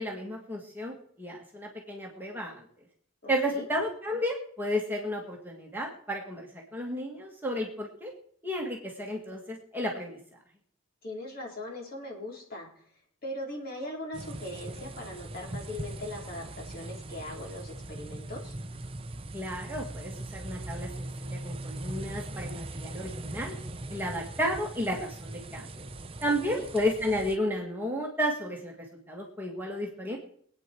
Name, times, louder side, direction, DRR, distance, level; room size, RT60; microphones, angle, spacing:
voice 1, 0.0-2.6 3.3-8.1 8.4-10.2 19.3-23.6 23.9-25.9 26.2-30.2, equal, 10° right, -1 dB, 1.9 m, -32 dB
voice 2, 3.2-3.7 11.0-12.8 13.2-18.5 26.2-26.7, left 1 dB, 45° left, -1 dB, 4.2 m, -40 dB
sound 1, 14.1-27.4, right 1 dB, 25° right, 0.7 m, -40 dB
23.0 x 9.1 x 4.6 m, 0.62 s
head